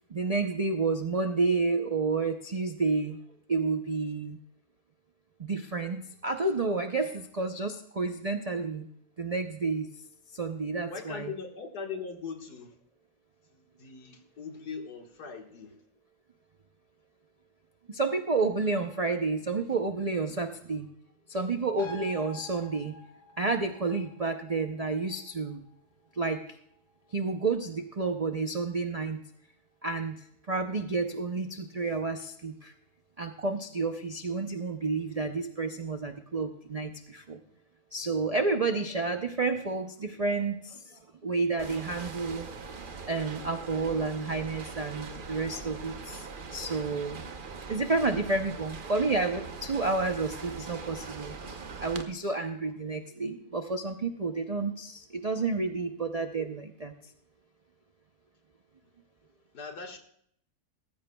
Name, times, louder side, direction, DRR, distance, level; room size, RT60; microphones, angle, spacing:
voice 1, 0.1-3.2 3.5-4.4 5.4-8.9 9.2-9.9 10.3-11.3 17.9-20.9 21.3-22.9 23.4-25.6 26.2-26.6 27.1-29.2 29.8-30.2 30.5-32.7 33.2-37.4 37.9-42.5 43.1-47.2 47.7-51.4 51.8-56.9, right 3 dB, 60° right, 6 dB, 0.3 m, -30 dB
voice 2, 10.9-12.7 13.5-15.7 59.5-60.0, left 5 dB, 85° left, 3 dB, 2.2 m, -40 dB
sound 1, 21.8-28.7 29.1-29.2, left 1 dB, 45° left, 4.9 m, -49 dB
sound 2, 41.6-52.0, right 5 dB, 40° right, 0.8 m, -42 dB
17.5 x 15.0 x 2.3 m, 0.67 s
omnidirectional pair, 1.7 m